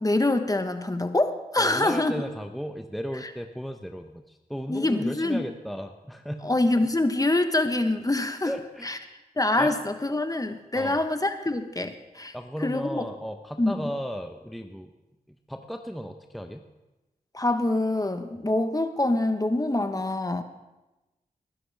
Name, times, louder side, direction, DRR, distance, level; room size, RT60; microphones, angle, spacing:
voice 1, 0.0-2.1 4.7-5.5 6.4-8.5 8.8-9.0 9.4-12.3 12.6-13.0 13.6-13.9 17.3-20.4, left 2 dB, 20° left, 8 dB, 1.1 m, -25 dB
voice 2, 1.6-6.4 8.4-9.1 9.6-9.7 10.7-11.0 12.3-14.9 15.5-16.6, equal, ahead, 6 dB, 0.8 m, -35 dB
20.0 x 11.0 x 3.5 m, 1.0 s
cardioid pair, 45°, 16 cm